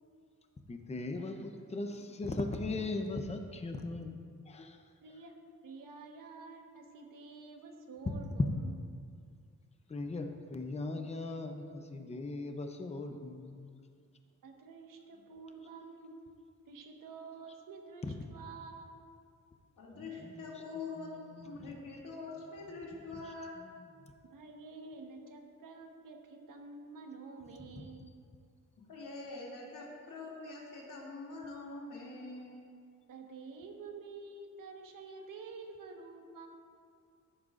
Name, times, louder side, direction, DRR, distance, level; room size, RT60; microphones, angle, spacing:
voice 1, 0.7-4.8 9.9-13.7 18.0-18.1 19.9-20.4 21.0-21.7 23.6-23.7 27.8-27.9, left 2 dB, 20° left, 5 dB, 0.7 m, -39 dB
voice 2, 5.0-5.4 5.6-8.7 14.4-16.1 16.7-18.9 24.3-28.1 33.1-36.5, right 4 dB, 85° right, 2 dB, 1.4 m, -49 dB
voice 3, 19.8-23.6 28.9-32.6, left 3 dB, 80° left, -4 dB, 2.7 m, -44 dB
14.5 x 10.5 x 2.5 m, 2.2 s
wide cardioid pair, 140°, 32 cm